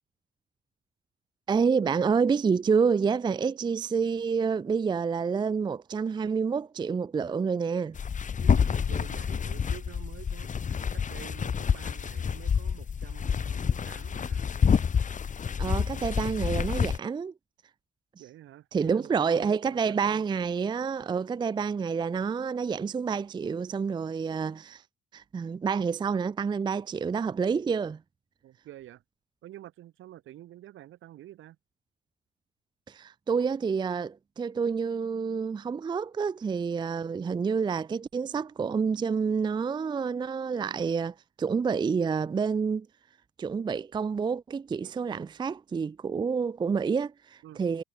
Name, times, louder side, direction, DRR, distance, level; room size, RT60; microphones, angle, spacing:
voice 1, 1.5-8.0 15.6-17.3 18.7-24.8 25.1-28.0 32.9-42.9 43.4-47.8, right 5 dB, 25° right, 0.4 m, -28 dB
sound 1, 7.9-17.0, left 6 dB, 40° left, 1.2 m, -28 dB
voice 2, 8.4-14.5 18.2-20.2 28.4-29.0 29.4-31.6 47.4-47.6, right 13 dB, 80° right, 5.8 m, -48 dB
cardioid pair, 90°, 20 cm